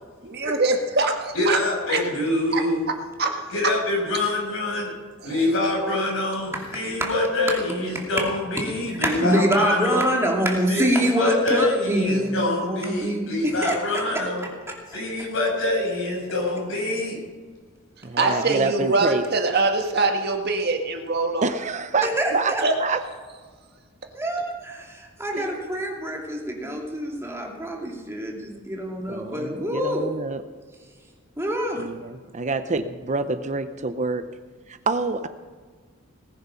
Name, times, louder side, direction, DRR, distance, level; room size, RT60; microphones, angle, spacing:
voice 1, 0.2-1.6 1.9-2.0 2.5-2.6 3.2-3.5 5.2-5.5 18.2-21.5 22.6-22.7, right 3 dB, 50° right, 4 dB, 1.7 m, -23 dB
voice 2, 1.3-2.9 3.5-4.9 5.2-10.1 10.7-14.5 14.9-17.2, left 2 dB, 75° left, -1 dB, 6.1 m, -25 dB
voice 3, 6.7-7.1 7.9-8.0 8.9-14.2 14.7-14.8 18.2-18.7 22.0-22.6 24.1-30.0 31.4-31.9, equal, 15° right, 0 dB, 2.5 m, -26 dB
voice 4, 18.0-19.2 21.4-22.1 22.3-22.5 22.8-23.0 25.3-25.6 29.1-30.4 31.8-34.2 34.7-35.3, right 3 dB, 35° right, 10 dB, 0.7 m, -26 dB
19.0 x 10.0 x 5.7 m, 1.5 s
head